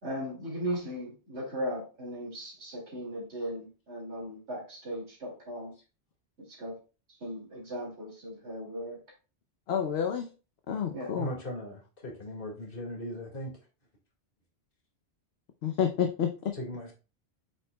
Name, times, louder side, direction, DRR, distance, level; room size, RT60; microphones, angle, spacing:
voice 1, 0.0-5.7 6.5-6.8 7.2-9.0 10.9-11.1, equal, 80° right, -4 dB, 2.6 m, -37 dB
voice 2, 9.7-10.3 10.7-11.3 15.6-16.5, left 8 dB, 70° left, 5 dB, 1.0 m, -29 dB
voice 3, 11.2-13.5 16.5-16.9, equal, 55° left, 0 dB, 2.1 m, -38 dB
7.8 x 5.7 x 2.2 m, 0.33 s
omnidirectional pair, 1.1 m